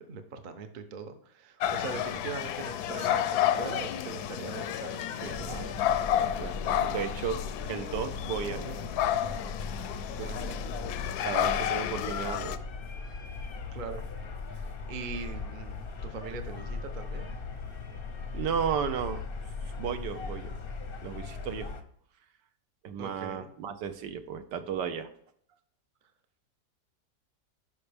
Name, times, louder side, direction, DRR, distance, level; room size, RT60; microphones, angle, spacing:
voice 1, 0.0-5.4 10.2-10.6 11.3-11.4 13.7-14.0 14.5-15.8 16.0-17.4 23.0-23.5, right 4 dB, 45° right, 7 dB, 0.6 m, -41 dB
sound 1, 1.6-12.6, left 11 dB, 70° left, 1.0 m, -31 dB
voice 2, 5.2-7.4 7.6-8.8 10.2-10.3 11.2-12.6 18.3-19.2 19.8-20.6 21.0-21.7 22.8-25.1, right 7 dB, 75° right, 9 dB, 1.3 m, -34 dB
sound 2, 5.3-21.8, left 4 dB, 50° left, 0.7 m, -39 dB
9.5 x 5.8 x 3.4 m, 0.66 s
omnidirectional pair, 1.9 m